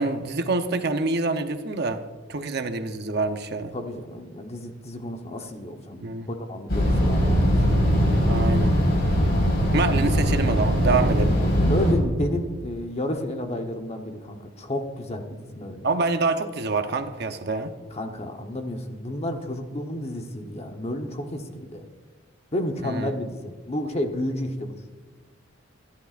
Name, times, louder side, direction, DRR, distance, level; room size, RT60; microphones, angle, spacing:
voice 1, 0.0-2.0 2.3-3.7 6.0-6.3 8.3-8.8 9.7-11.4 15.8-17.7 22.8-23.1, right 3 dB, 50° right, 7 dB, 0.8 m, -26 dB
voice 2, 3.7-7.7 11.6-15.9 17.9-21.8 22.5-24.7, left 1 dB, 30° left, 5 dB, 1.0 m, -31 dB
sound 1, 6.7-11.9, equal, 55° left, 4.6 m, -21 dB
26.0 x 10.5 x 2.5 m, 1.4 s
head